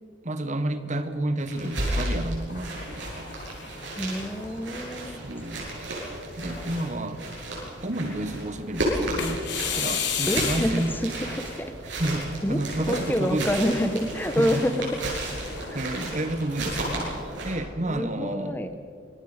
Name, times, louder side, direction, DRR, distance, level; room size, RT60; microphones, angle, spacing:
voice 1, 0.2-3.3 5.0-5.7 6.4-7.2 7.8-9.4 9.8-10.9 12.0-13.8 14.4-14.6 15.7-17.1 17.4-18.8, right 1 dB, 40° right, 9 dB, 1.3 m, -30 dB
sound 1, 1.4-17.5, right 1 dB, 75° right, 7.9 m, -33 dB
sound 2, 2.5-5.1 5.6-5.7 6.4-7.1 9.2-10.9 12.8-15.7, left 7 dB, 65° left, 3.2 m, -34 dB
voice 2, 4.0-5.2 10.3-11.7 12.4-12.6 12.9-14.9 15.7-15.8 17.8-18.7, equal, 10° left, 8 dB, 1.0 m, -27 dB
27.5 x 23.0 x 5.1 m, 2.2 s
head